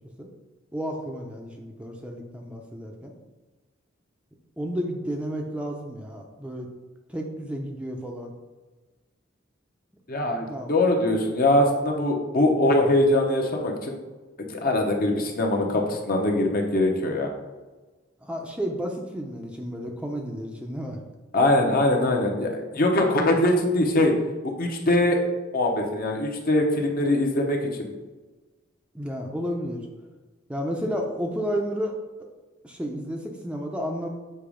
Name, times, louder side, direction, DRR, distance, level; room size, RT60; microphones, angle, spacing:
voice 1, 0.7-3.1 4.6-6.7 7.1-8.3 10.5-10.7 18.2-21.0 28.9-29.9 30.5-31.9 32.2-32.3 32.6-34.1, equal, 5° right, 1 dB, 0.5 m, -32 dB
voice 2, 10.1-14.0 14.5-17.3 21.3-24.1 24.4-25.2 25.5-27.9, left 1 dB, 50° left, 2 dB, 0.9 m, -22 dB
6.7 x 3.0 x 5.0 m, 1.2 s
head